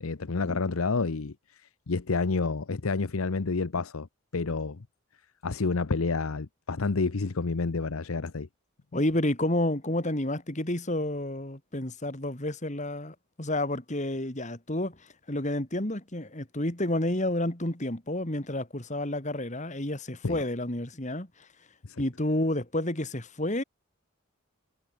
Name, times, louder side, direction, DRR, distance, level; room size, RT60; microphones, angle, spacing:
voice 1, 0.0-1.3 1.9-4.1 4.3-4.8 5.4-8.5 20.2-20.4 21.9-22.0, left 4 dB, 80° left, 0.8 m, -29 dB
voice 2, 8.9-15.0 15.3-21.3 22.0-23.6, left 1 dB, 35° left, 2.6 m, -30 dB
head